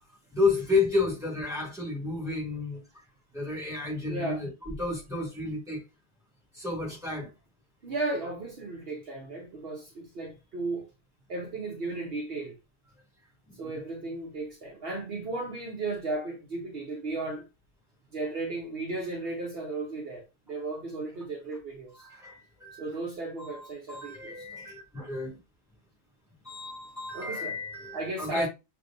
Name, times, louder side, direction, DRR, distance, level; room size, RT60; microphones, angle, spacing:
voice 1, 0.3-2.8 3.3-5.8 6.5-7.3 13.5-13.7 22.0-22.9 23.4-25.4 26.4-28.5, left 3 dB, 5° right, 2.2 m, -31 dB
voice 2, 4.1-4.4 7.8-10.9 11.3-12.6 13.5-17.5 18.1-22.1 22.8-24.5 27.1-27.6 27.9-28.5, right 2 dB, 60° right, 1.0 m, -35 dB
6.5 x 2.6 x 2.5 m
omnidirectional pair, 1.2 m